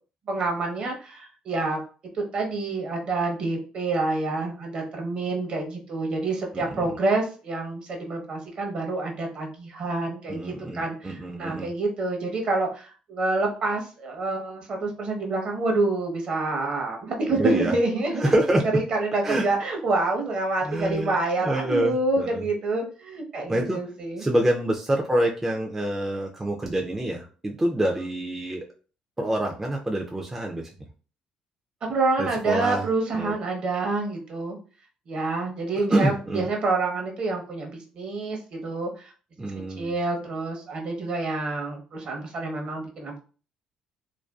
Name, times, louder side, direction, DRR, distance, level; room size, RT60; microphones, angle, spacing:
voice 1, 0.3-1.8 2.1-24.3 31.8-34.6 35.1-39.1 39.7-43.2, right 3 dB, 50° right, 2 dB, 0.7 m, -27 dB
voice 2, 6.5-6.9 10.3-11.7 17.3-17.7 18.2-18.7 19.2-19.4 20.6-21.2 21.4-22.4 23.5-23.8 24.2-28.6 29.2-30.7 32.2-32.8 33.1-33.3 35.8-36.4 39.4-39.9, right 1 dB, 15° right, 0 dB, 0.3 m, -26 dB
2.4 x 2.2 x 2.3 m, 0.38 s
cardioid pair, 110°, 2 cm